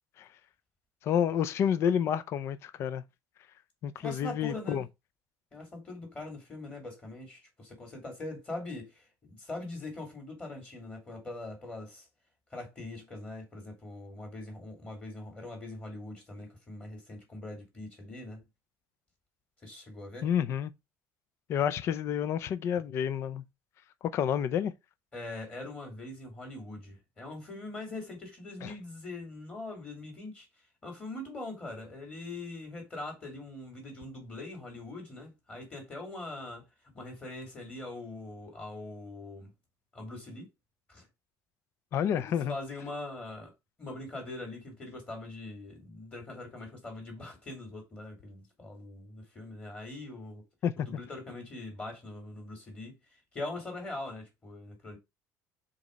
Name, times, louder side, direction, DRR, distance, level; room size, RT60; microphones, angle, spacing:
voice 1, 1.0-3.0 3.8-4.8 20.2-20.7 21.5-23.4 24.0-24.7 28.6-28.7 41.9-42.5 50.6-50.7, left 8 dB, 40° left, 0.5 m, -29 dB
voice 2, 4.0-4.9 5.5-12.1 12.5-18.4 19.6-20.3 25.1-30.5 30.8-36.6 36.9-39.5 39.9-40.5 40.9-41.1 42.1-43.5 43.8-50.4 50.8-52.9 53.3-55.0, left 2 dB, 20° left, 2.8 m, -42 dB
5.2 x 4.1 x 5.2 m
cardioid pair, 160°, 7 cm